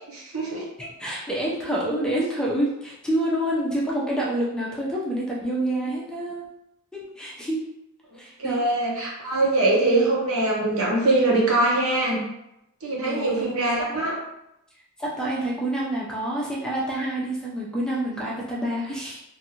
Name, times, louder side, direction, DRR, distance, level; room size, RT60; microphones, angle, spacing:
voice 1, 0.1-0.7 8.1-12.2 12.8-14.2, right 2 dB, 75° right, -3 dB, 0.8 m, -23 dB
voice 2, 0.8-6.5 6.9-7.6 8.2-8.6 9.9-10.1 13.0-13.5 13.9-14.0 15.0-19.2, right 1 dB, 5° left, -5 dB, 0.4 m, -27 dB
2.6 x 2.4 x 2.8 m, 0.86 s
head